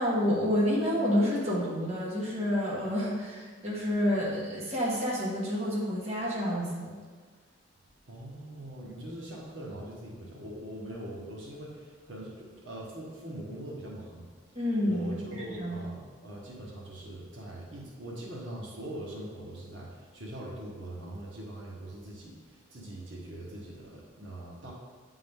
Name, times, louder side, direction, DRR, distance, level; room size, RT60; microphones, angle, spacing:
voice 1, 0.0-6.9 14.5-15.9, equal, 35° right, -6 dB, 1.4 m, -29 dB
voice 2, 8.1-14.3 14.8-24.7, right 1 dB, 75° right, -4 dB, 1.2 m, -42 dB
8.8 x 3.8 x 3.6 m, 1.5 s
head